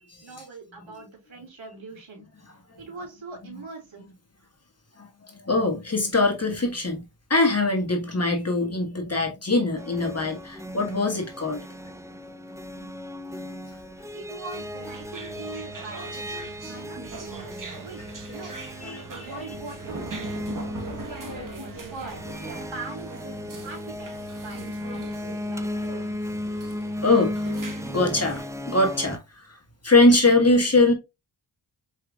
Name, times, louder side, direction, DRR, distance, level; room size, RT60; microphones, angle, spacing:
voice 1, 0.2-2.3 2.8-4.1 14.1-17.0 17.8-18.0 18.3-20.1 20.7-23.2 23.6-24.1 24.4-26.2, right 3 dB, 65° right, 3.2 m, -42 dB
voice 2, 5.0-11.6 18.8-19.3 20.9-21.1 21.3-21.8 24.9-25.0 27.0-27.4 27.8-29.6 29.8-30.9, left 2 dB, 30° left, 1.5 m, -23 dB
sound 1, 9.8-29.2, left 1 dB, 5° right, 0.4 m, -36 dB
sound 2, 14.5-28.4, right 3 dB, 40° right, 1.3 m, -40 dB
4.8 x 4.5 x 2.4 m
cardioid pair, 50°, 50 cm